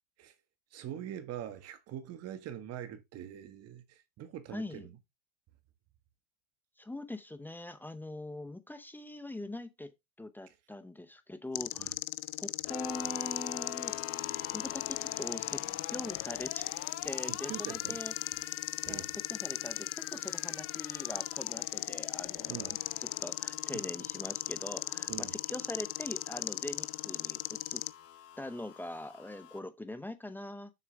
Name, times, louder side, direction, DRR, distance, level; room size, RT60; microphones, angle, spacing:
voice 1, 0.7-5.0 10.5-10.6 11.8-11.9 17.2-18.0 18.8-19.1 22.5-22.8 25.1-25.4, right 10 dB, 35° right, 1.5 m, -43 dB
voice 2, 4.5-4.9 6.8-9.9 10.2-11.9 12.4-13.9 14.5-16.7 17.0-18.1 18.9-27.8 28.4-30.7, left 1 dB, 5° left, 0.6 m, -43 dB
sound 1, 11.5-27.9, left 21 dB, 50° left, 0.5 m, -37 dB
sound 2, 12.7-29.6, left 11 dB, 30° left, 1.0 m, -46 dB
7.2 x 6.6 x 3.2 m
hypercardioid pair, 120°, 45 cm